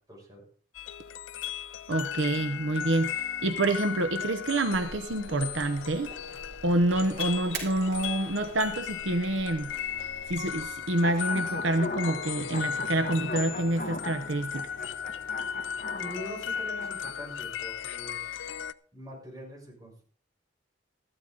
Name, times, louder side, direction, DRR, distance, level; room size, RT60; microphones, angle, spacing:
voice 1, 0.1-0.4 15.9-18.5 18.9-20.0, equal, 20° right, -2 dB, 6.5 m, -44 dB
sound 1, 0.7-18.7, left 8 dB, 75° left, 0.5 m, -36 dB
voice 2, 1.9-6.1 6.6-9.7 10.3-14.7, right 2 dB, 75° right, 9 dB, 0.9 m, -27 dB
sound 2, 4.7-10.7, right 3 dB, 60° right, 4.6 m, -45 dB
sound 3, 11.0-17.1, left 2 dB, 45° left, 1.5 m, -39 dB
14.5 x 12.5 x 3.9 m, 0.43 s
head